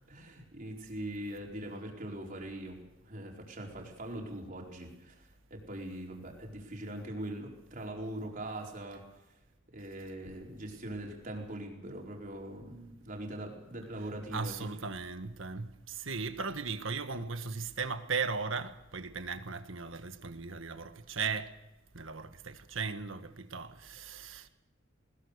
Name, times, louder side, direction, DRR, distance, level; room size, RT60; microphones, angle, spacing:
voice 1, 0.1-9.0 9.7-14.6, right 1 dB, 40° right, 4.8 m, -42 dB
voice 2, 14.3-21.5 21.9-24.5, right 4 dB, 70° right, 1.5 m, -37 dB
21.0 x 20.5 x 6.7 m
head